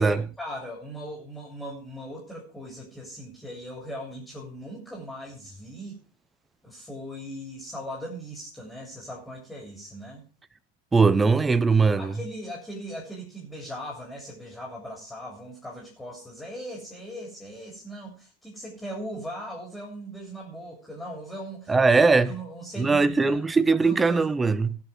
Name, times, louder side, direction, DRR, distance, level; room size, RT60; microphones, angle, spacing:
voice 1, 0.0-6.0 6.6-10.2 12.0-21.9 22.2-24.3, equal, 5° left, 3.4 m, -39 dB
voice 2, 10.9-12.2 21.7-22.3 22.8-24.8, right 4 dB, 10° right, 0.6 m, -20 dB
18.0 x 6.6 x 4.4 m
figure-of-eight pair, 90°, 0 cm